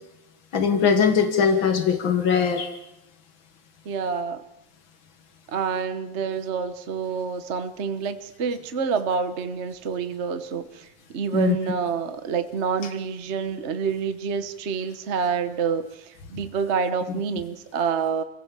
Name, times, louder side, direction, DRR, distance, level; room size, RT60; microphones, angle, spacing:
voice 1, 0.5-2.7 11.3-11.6, left 6 dB, 90° left, 7 dB, 2.4 m, -20 dB
voice 2, 3.8-4.4 5.5-18.2, right 6 dB, 40° right, 9 dB, 1.2 m, -27 dB
28.0 x 17.0 x 7.5 m, 0.94 s
omnidirectional pair, 2.1 m